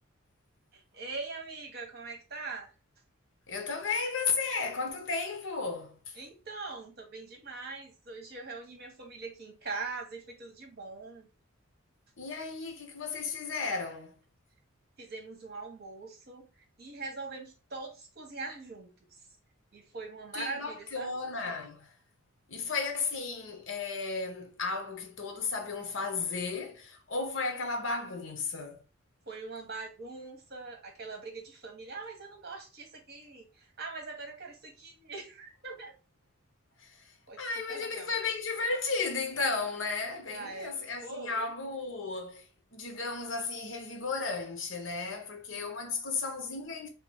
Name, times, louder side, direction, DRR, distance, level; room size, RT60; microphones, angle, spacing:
voice 1, 0.7-2.7 6.2-11.3 15.0-18.9 19.7-21.2 29.3-35.9 37.3-38.1 40.3-40.7 41.0-41.5, right 3 dB, 50° right, 1.2 m, -42 dB
voice 2, 3.5-6.1 12.2-14.2 20.3-21.9 22.5-28.8 36.8-37.0 37.4-42.5 42.7-46.9, left 4 dB, 65° left, 0.9 m, -34 dB
3.1 x 3.0 x 3.5 m
head